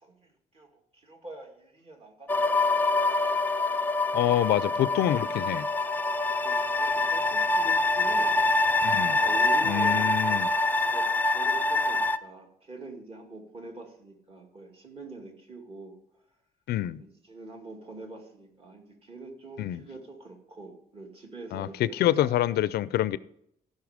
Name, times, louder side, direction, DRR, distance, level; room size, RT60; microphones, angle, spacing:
voice 1, 0.0-3.0 4.5-4.7 6.0-8.5 9.2-10.5 10.8-16.0 17.0-22.4, right 3 dB, 35° right, 2.3 m, -45 dB
sound 1, 2.3-12.2, left 2 dB, 10° left, 0.4 m, -25 dB
voice 2, 4.1-5.7 8.8-9.2 9.7-10.5 16.7-17.0 19.6-19.8 21.5-23.2, left 13 dB, 85° left, 0.5 m, -26 dB
16.0 x 5.6 x 5.0 m
cardioid pair, 140°, 16 cm